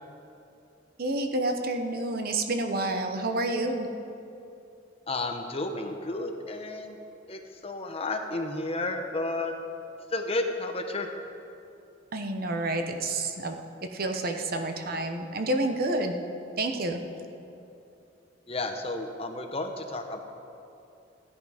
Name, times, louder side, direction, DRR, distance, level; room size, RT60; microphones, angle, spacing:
voice 1, 1.0-3.9 12.1-13.6 13.9-16.1 16.6-17.0, right 2 dB, 50° right, 5 dB, 0.9 m, -29 dB
voice 2, 5.1-7.0 7.3-9.5 10.1-11.1 18.5-20.2, left 2 dB, 30° left, 5 dB, 0.9 m, -32 dB
15.5 x 10.0 x 5.0 m, 2.7 s
head